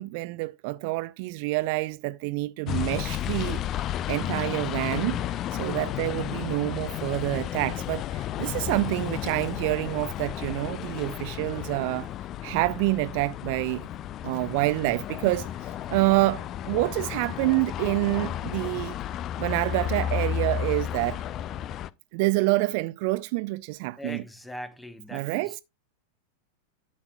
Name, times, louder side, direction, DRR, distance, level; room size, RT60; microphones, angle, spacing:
voice 1, 0.0-5.2 5.5-12.1 12.4-13.9 14.2-15.5 15.9-18.9 19.4-21.2 22.1-24.2 25.1-25.6, right 21 dB, 45° right, 0.4 m, -27 dB
sound 1, 2.7-21.9, left 11 dB, 30° left, 0.4 m, -32 dB
voice 2, 5.5-5.9 24.0-25.6, equal, 5° left, 0.9 m, -41 dB
11.5 x 7.3 x 2.3 m
figure-of-eight pair, 90°, 0 cm